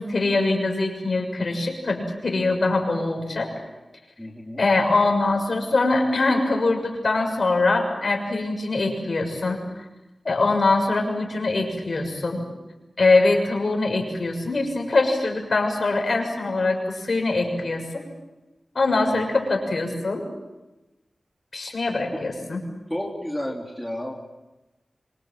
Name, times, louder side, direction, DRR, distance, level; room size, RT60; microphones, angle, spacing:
voice 1, 0.0-3.5 4.6-9.6 10.2-12.5 13.0-18.0 18.7-20.3 21.5-22.6, left 3 dB, 55° left, 3 dB, 6.6 m, -23 dB
voice 2, 4.2-4.6 19.0-19.3 22.1-22.2 22.9-24.1, left 1 dB, 5° left, -1 dB, 3.6 m, -32 dB
26.0 x 26.0 x 7.8 m, 1.1 s
wide cardioid pair, 90°, 0 cm